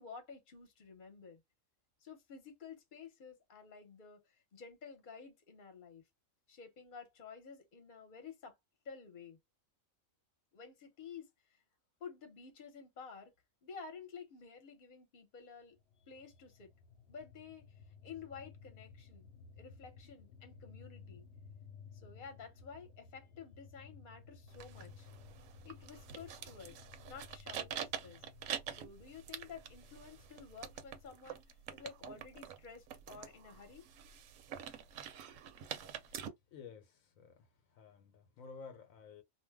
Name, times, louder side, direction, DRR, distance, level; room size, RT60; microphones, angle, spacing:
voice 1, 0.0-1.4 2.0-6.0 6.5-8.6 8.8-9.4 10.5-11.6 12.0-13.3 13.6-15.8 16.1-16.7 17.1-17.6 18.0-19.3 19.6-21.2 22.0-25.1 25.6-28.2 28.7-31.4 31.7-33.9, left 6 dB, 40° left, 1.0 m, -52 dB
sound 1, 15.8-31.1, left 5 dB, 65° left, 0.7 m, -57 dB
sound 2, 24.5-36.3, right 8 dB, 75° right, 1.0 m, -46 dB
voice 2, 36.5-37.4 37.7-39.2, left 5 dB, 80° left, 1.1 m, -53 dB
2.6 x 2.2 x 3.4 m
omnidirectional pair, 1.4 m